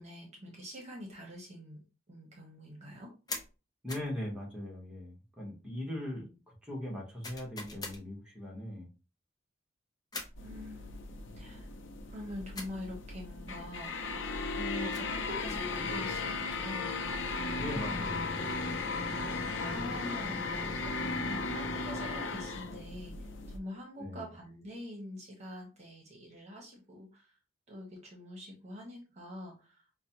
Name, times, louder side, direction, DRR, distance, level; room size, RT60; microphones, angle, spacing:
voice 1, 0.0-3.1 10.4-11.7 12.1-14.2 14.6-16.9 19.6-27.3 27.7-29.8, left 1 dB, 40° right, -1 dB, 1.0 m, -45 dB
sound 1, 3.3-3.5 3.9-4.1 7.2-8.0 10.1-10.4 12.5-12.8 14.7-15.2, left 2 dB, 20° left, 0.8 m, -42 dB
voice 2, 3.8-8.9 17.6-18.6 24.0-24.3, left 1 dB, 5° right, -3 dB, 1.2 m, -40 dB
sound 2, 10.4-23.6, left 3 dB, 85° left, 0.6 m, -36 dB
5.0 x 2.2 x 2.9 m, 0.33 s
head